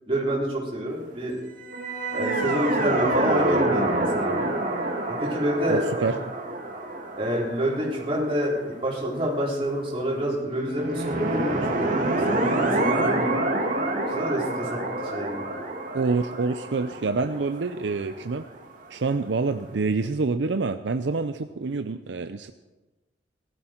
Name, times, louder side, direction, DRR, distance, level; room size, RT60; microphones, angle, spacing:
voice 1, 0.1-1.4 2.1-4.6 5.1-5.8 7.2-13.4 14.1-15.5, equal, 30° right, -4 dB, 4.1 m, -28 dB
sound 1, 1.6-8.9 10.7-18.5, right 2 dB, 45° right, 2.4 m, -27 dB
voice 2, 5.7-6.2 15.9-18.5 18.9-22.5, right 4 dB, 70° right, 9 dB, 0.6 m, -27 dB
18.5 x 13.0 x 4.5 m, 1.1 s
head